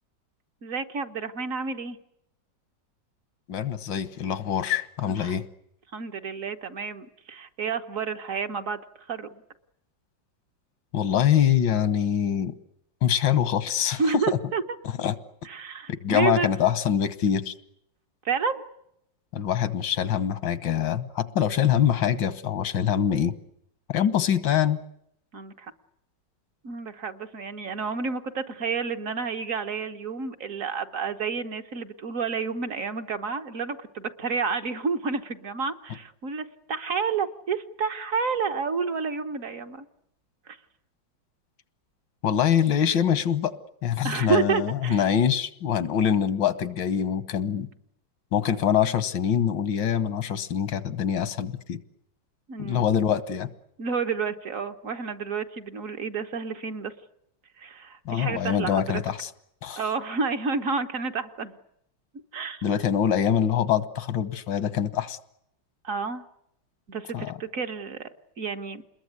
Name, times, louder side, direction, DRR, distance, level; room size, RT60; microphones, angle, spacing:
voice 1, 0.6-2.0 5.0-5.4 5.9-9.4 14.0-14.6 15.4-16.5 18.2-18.6 21.4-21.6 25.3-25.7 26.6-39.9 40.5-40.6 44.0-45.1 52.5-52.9 53.8-56.9 57.6-59.0 59.8-61.6 62.3-62.7 65.8-66.2 66.9-68.8, right 5 dB, 50° right, 7 dB, 1.4 m, -30 dB
voice 2, 3.5-5.4 10.9-12.5 13.0-14.4 15.0-15.2 15.9-17.5 19.3-23.3 23.9-24.8 42.2-47.7 48.3-51.8 52.6-53.5 58.1-59.3 59.6-59.8 62.6-65.2 67.1-67.4, left 9 dB, 85° left, 14 dB, 1.9 m, -24 dB
28.0 x 21.5 x 8.2 m, 0.76 s
omnidirectional pair, 2.0 m